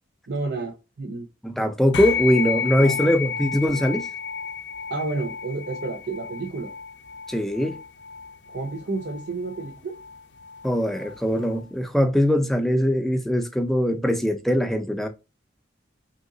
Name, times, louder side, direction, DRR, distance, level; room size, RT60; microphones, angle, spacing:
voice 1, 0.3-1.3 2.6-3.0 4.9-6.7 8.5-10.0, right 3 dB, 70° right, 0.6 m, -31 dB
voice 2, 1.4-4.1 7.3-7.8 10.6-15.1, equal, ahead, 0.4 m, -22 dB
sound 1, 1.9-11.6, left 6 dB, 75° left, 0.4 m, -32 dB
3.1 x 2.8 x 2.6 m
head